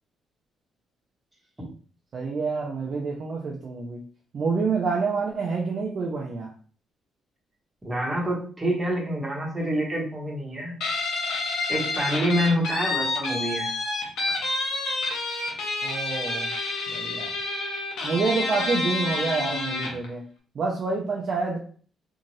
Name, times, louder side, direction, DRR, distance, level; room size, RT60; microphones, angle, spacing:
voice 1, 2.1-4.0 4.3-6.5 15.8-16.5 16.9-17.4 18.0-20.2 20.5-21.6, right 4 dB, 55° right, -2 dB, 0.6 m, -27 dB
voice 2, 7.8-10.7 11.7-13.7, equal, 15° right, -3 dB, 1.2 m, -27 dB
Guitar, 10.8-20.1, left 3 dB, 80° left, 0.9 m, -29 dB
2.7 x 2.4 x 3.1 m, 0.42 s
cardioid pair, 90°, 0 cm